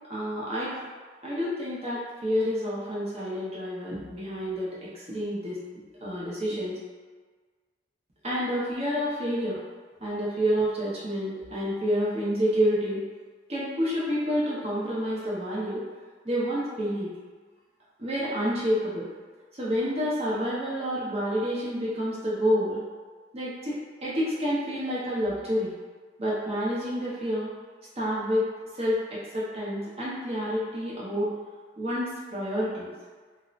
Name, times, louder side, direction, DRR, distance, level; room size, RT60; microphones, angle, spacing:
voice 1, 0.1-0.8 1.2-5.6 6.0-6.8 8.2-9.6 10.0-13.0 13.5-15.8 16.2-17.1 18.0-19.1 19.6-22.8 23.3-25.7 26.2-27.5 28.0-31.3 31.8-32.9, equal, 30° right, -8 dB, 0.7 m, -28 dB
2.7 x 2.0 x 2.4 m, 1.4 s
head